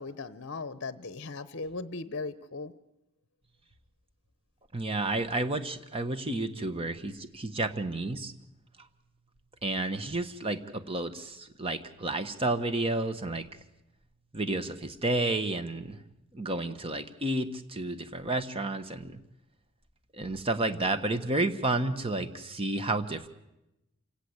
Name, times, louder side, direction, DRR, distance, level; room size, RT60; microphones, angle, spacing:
voice 1, 0.0-2.7, left 3 dB, 55° left, 14 dB, 0.8 m, -38 dB
voice 2, 4.7-8.3 9.6-13.5 14.3-16.0 16.3-19.2 20.1-23.3, right 2 dB, 25° right, 10 dB, 1.3 m, -31 dB
27.5 x 17.5 x 8.1 m, 0.92 s
head